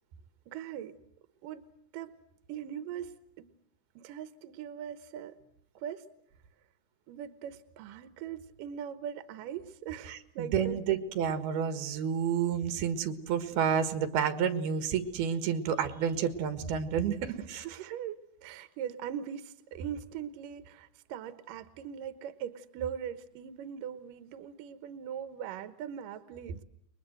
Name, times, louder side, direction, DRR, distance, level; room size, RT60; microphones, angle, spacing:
voice 1, 0.5-0.9 1.4-1.6 1.9-2.1 2.5-3.5 4.0-5.4 5.8-6.1 7.1-10.8 17.2-17.4 17.6-26.6, right 9 dB, 70° right, 12 dB, 2.7 m, -40 dB
voice 2, 10.1-17.7, right 7 dB, 90° right, 10 dB, 3.6 m, -30 dB
29.5 x 22.5 x 7.9 m, 0.70 s
omnidirectional pair, 4.3 m